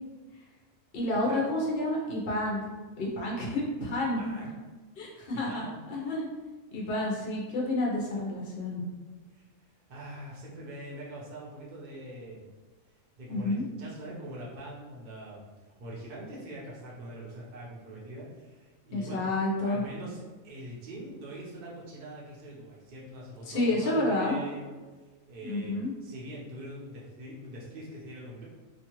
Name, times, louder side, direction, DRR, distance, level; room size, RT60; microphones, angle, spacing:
voice 1, 0.9-2.6 3.0-4.5 5.0-6.3 6.7-8.8 13.3-13.6 18.9-19.8 23.5-24.4 25.4-25.9, left 1 dB, 55° left, -3 dB, 0.7 m, -30 dB
voice 2, 4.2-4.5 5.1-5.8 7.3-7.4 9.3-9.4 9.9-12.5 13.2-15.5 15.8-19.3 19.6-24.8 25.3-25.7 26.0-28.4, right 1 dB, 45° right, -5 dB, 0.7 m, -43 dB
2.8 x 2.3 x 2.9 m, 1.3 s
omnidirectional pair, 1.4 m